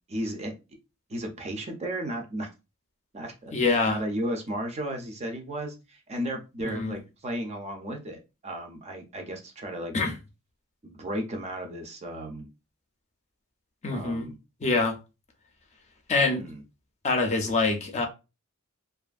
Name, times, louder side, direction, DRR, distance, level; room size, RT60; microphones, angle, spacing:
voice 1, 0.1-0.5 1.1-2.5 3.1-9.9 10.8-12.5 13.9-14.4 16.4-16.6, right 1 dB, 30° right, 0.5 m, -34 dB
voice 2, 3.5-4.0 6.6-7.0 9.9-10.1 13.8-14.3 14.6-15.0 16.1-16.5 17.0-18.1, left 3 dB, 30° left, 0.5 m, -25 dB
2.5 x 2.4 x 2.3 m
head